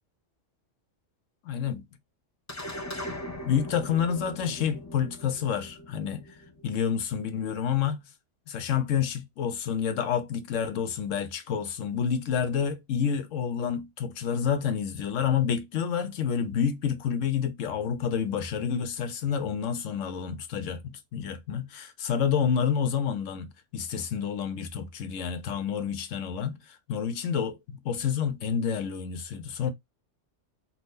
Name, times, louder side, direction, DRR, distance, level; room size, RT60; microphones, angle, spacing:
voice 1, 1.4-1.8 3.4-6.2 6.6-8.1 8.5-26.6 26.9-29.7, left 7 dB, 90° left, 1.1 m, -29 dB
sound 1, 2.5-7.1, left 1 dB, 20° left, 0.5 m, -40 dB
2.7 x 2.5 x 3.5 m
omnidirectional pair, 1.3 m